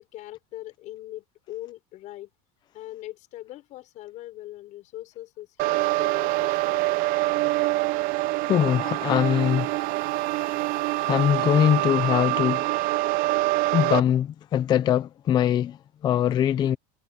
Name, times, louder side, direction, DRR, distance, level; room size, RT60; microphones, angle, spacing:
voice 1, 0.0-2.3 2.7-7.0, left 15 dB, 40° left, 6.6 m, -41 dB
sound 1, 5.6-14.0, right 19 dB, 50° right, 0.8 m, -25 dB
voice 2, 8.5-9.8 10.3-10.6 11.0-12.7 13.7-16.8, left 10 dB, 25° left, 0.5 m, -22 dB
supercardioid pair, 160°, 18 cm